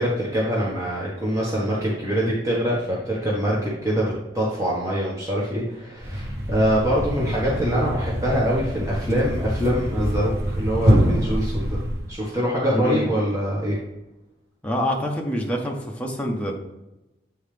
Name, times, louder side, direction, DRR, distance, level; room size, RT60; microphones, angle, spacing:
voice 1, 0.0-11.8 12.1-13.8, equal, 20° right, -6 dB, 1.4 m, -24 dB
Thump thud, 6.0-12.2, equal, 70° right, 1.3 m, -25 dB
voice 2, 12.7-13.1 14.6-16.5, equal, 10° left, 0 dB, 1.0 m, -26 dB
8.6 x 4.4 x 3.4 m, 0.99 s
head